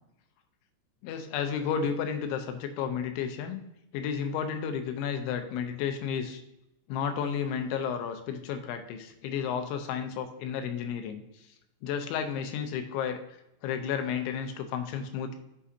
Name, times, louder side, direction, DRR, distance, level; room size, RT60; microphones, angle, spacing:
voice 1, 1.0-3.6 3.9-6.4 6.9-11.2 11.8-13.2 13.6-15.4, left 7 dB, 85° left, 7 dB, 3.1 m, -32 dB
8.3 x 6.2 x 2.7 m, 0.85 s
omnidirectional pair, 5.2 m